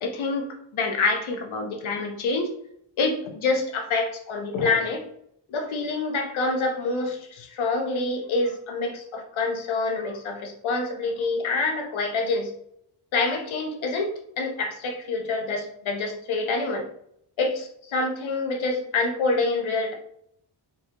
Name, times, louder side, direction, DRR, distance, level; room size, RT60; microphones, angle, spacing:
voice 1, 0.0-2.6 3.0-5.0 5.5-12.5 13.1-16.9 17.4-19.9, left 3 dB, 70° left, 4 dB, 0.8 m, -27 dB
4.0 x 2.3 x 2.8 m, 0.70 s
wide cardioid pair, 170°, 49 cm